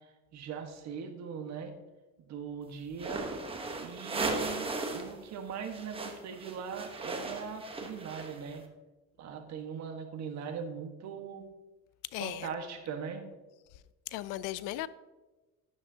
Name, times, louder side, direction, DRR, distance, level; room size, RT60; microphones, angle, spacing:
voice 1, 0.3-1.7 2.2-3.2 3.8-8.6 9.2-11.5 12.2-13.3, right 6 dB, 60° right, 1.5 m, -40 dB
sound 1, 2.9-5.1 5.4-8.6, right 3 dB, 15° right, 1.1 m, -37 dB
voice 2, 12.1-12.5 14.1-14.9, left 15 dB, 80° left, 0.5 m, -36 dB
11.5 x 10.0 x 2.8 m
cardioid pair, 130°, 31 cm